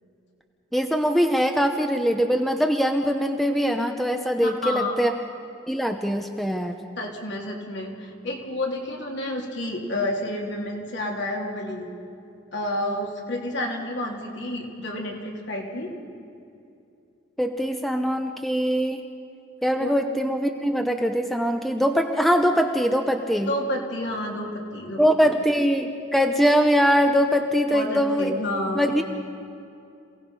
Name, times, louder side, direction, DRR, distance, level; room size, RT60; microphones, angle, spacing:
voice 1, 0.7-5.1 5.7-6.8 17.4-19.0 19.6-23.5 25.0-28.4 28.7-29.0, equal, ahead, 5 dB, 0.8 m, -22 dB
voice 2, 4.4-4.9 7.0-11.9 12.5-15.9 19.8-19.9 23.5-25.0 27.7-29.0, left 1 dB, 65° left, 0 dB, 3.0 m, -30 dB
28.0 x 17.5 x 5.5 m, 2.6 s
head